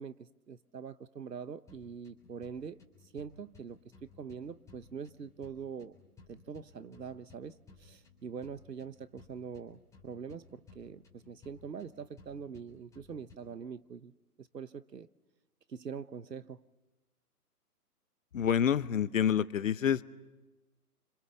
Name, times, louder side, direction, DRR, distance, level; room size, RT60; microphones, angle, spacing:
voice 1, 0.0-2.8 3.1-6.0 6.3-14.1 14.4-15.1 15.7-16.6, right 6 dB, 85° right, 1.1 m, -44 dB
sound 1, 1.7-13.7, left 4 dB, 5° left, 3.6 m, -59 dB
voice 2, 18.3-20.0, left 9 dB, 55° left, 1.0 m, -27 dB
29.5 x 26.0 x 7.0 m
figure-of-eight pair, 140°, 48 cm